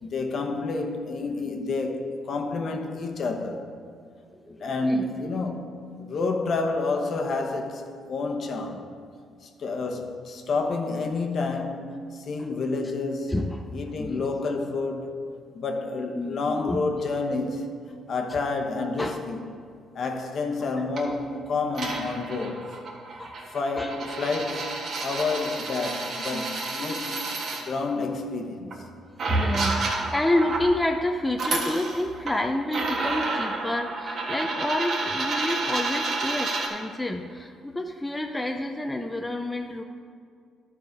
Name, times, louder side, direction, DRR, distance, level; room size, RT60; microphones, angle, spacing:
voice 1, 0.0-3.7 4.6-8.9 9.4-13.4 13.7-15.2 15.5-17.7 18.1-19.4 19.9-22.7 23.5-24.7 25.0-28.8, left 3 dB, 55° left, 1.0 m, -29 dB
voice 2, 4.4-5.6 13.3-14.2 16.2-16.8 18.7-19.2 20.8-20.9 23.2-23.4 23.8-23.9 26.8-26.9 27.3-27.5 29.3-39.8, left 1 dB, 10° left, 0.5 m, -29 dB
sound 1, 21.0-21.1 21.7-27.6 28.7-28.8 29.2-30.7 31.3-32.4 32.7-36.7, right 3 dB, 55° right, 1.6 m, -30 dB
12.0 x 4.9 x 5.2 m
cardioid pair, 105°, 0 cm